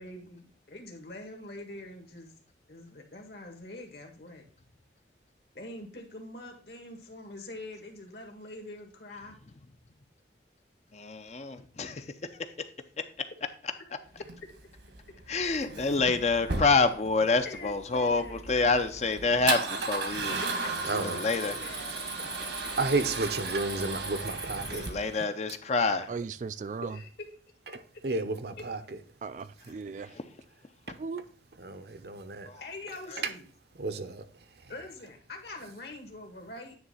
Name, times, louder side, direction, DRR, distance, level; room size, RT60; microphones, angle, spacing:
voice 1, 0.0-2.4 2.7-4.4 5.5-9.4 17.4-18.9 20.2-20.3 20.6-22.1 26.8-27.3 32.6-33.4 34.7-36.8, left 2 dB, 65° left, 1.8 m, -44 dB
voice 2, 10.9-12.0 15.3-20.3 21.0-21.6 24.7-26.1 32.5-32.6, left 3 dB, 40° left, 0.5 m, -27 dB
Male speech man speaking / Car / Engine starting, 14.2-25.2, right 3 dB, 80° right, 1.6 m, -36 dB
Cricket, 16.1-16.4 16.8-17.2 17.8-17.9 18.6-19.2 19.4-19.7 20.0-24.9, right 1 dB, 5° right, 0.6 m, -42 dB
voice 3, 20.8-21.3 21.9-22.1 22.8-24.8 27.7-29.0 30.9-31.0 31.6-32.5 33.2-33.3 33.8-34.3 34.5-34.7, right 3 dB, 60° right, 0.8 m, -32 dB
voice 4, 26.1-26.9 29.2-30.1 31.0-31.2, right 5 dB, 45° right, 0.3 m, -37 dB
9.6 x 3.3 x 5.4 m
head